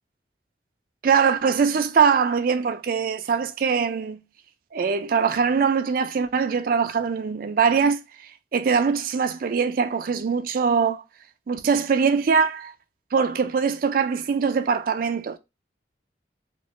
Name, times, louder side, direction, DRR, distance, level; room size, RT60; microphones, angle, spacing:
voice 1, 1.0-4.2 4.7-8.0 8.5-11.0 11.5-12.7 13.1-15.4, right 6 dB, 50° right, 0.3 m, -22 dB
3.0 x 2.4 x 2.9 m
head